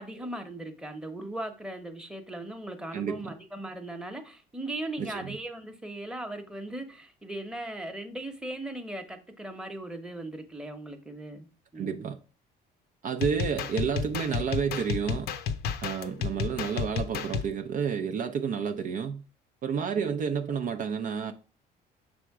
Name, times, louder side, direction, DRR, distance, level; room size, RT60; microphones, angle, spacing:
voice 1, 0.0-11.5 11.7-12.1 19.9-20.2, right 1 dB, 5° right, 0.9 m, -38 dB
voice 2, 2.9-3.3 5.0-5.4 11.8-12.2 13.0-15.3 15.8-19.2 19.6-21.3, right 7 dB, 50° right, 0.5 m, -30 dB
sound 1, 13.2-17.5, left 7 dB, 75° left, 0.7 m, -32 dB
6.1 x 3.5 x 4.7 m
cardioid pair, 110°, 17 cm